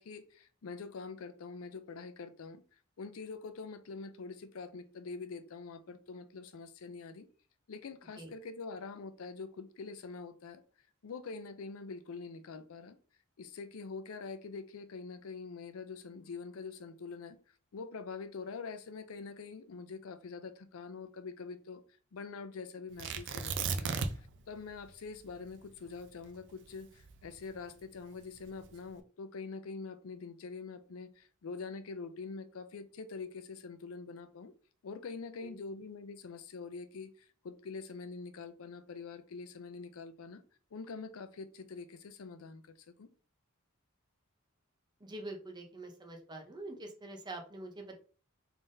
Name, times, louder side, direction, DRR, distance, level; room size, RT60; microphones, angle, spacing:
voice 1, 0.0-2.6 3.0-7.3 7.7-10.6 11.0-13.0 13.4-17.4 17.7-21.8 22.1-34.5 34.8-40.4 40.7-43.1, left 4 dB, 80° left, 0.5 m, -45 dB
Tearing, 23.0-24.4 24.7-24.8 25.3-27.7 28.4-28.8, right 5 dB, 60° right, 0.4 m, -36 dB
voice 2, 35.4-35.8 45.0-48.0, right 2 dB, 20° right, 0.7 m, -45 dB
3.6 x 3.4 x 2.6 m
head